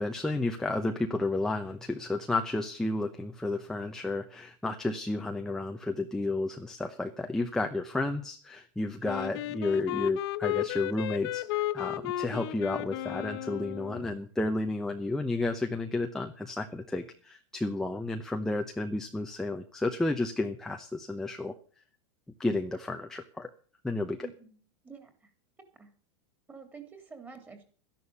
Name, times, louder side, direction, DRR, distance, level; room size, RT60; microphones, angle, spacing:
voice 1, 0.0-21.5 22.4-23.5 23.8-24.3, left 2 dB, 5° left, 4 dB, 0.8 m, -32 dB
Wind instrument woodwind instrument, 9.0-14.1, left 14 dB, 55° left, 0.9 m, -34 dB
voice 2, 24.2-24.6 24.8-25.3 25.8-25.9 26.5-27.6, right 5 dB, 10° right, 7 dB, 3.1 m, -48 dB
13.0 x 11.0 x 7.1 m, 0.43 s
supercardioid pair, 155°, 15 cm